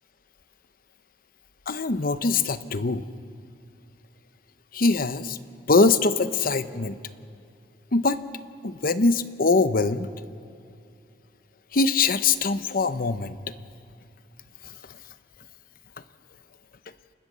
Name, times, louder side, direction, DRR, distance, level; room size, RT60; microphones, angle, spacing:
voice 1, 1.7-3.1 4.7-5.4 5.7-7.0 7.9-8.2 8.6-10.1 11.7-13.6 14.6-14.7, left 3 dB, 50° left, 12 dB, 0.8 m, -23 dB
29.0 x 13.5 x 6.8 m, 2.6 s
head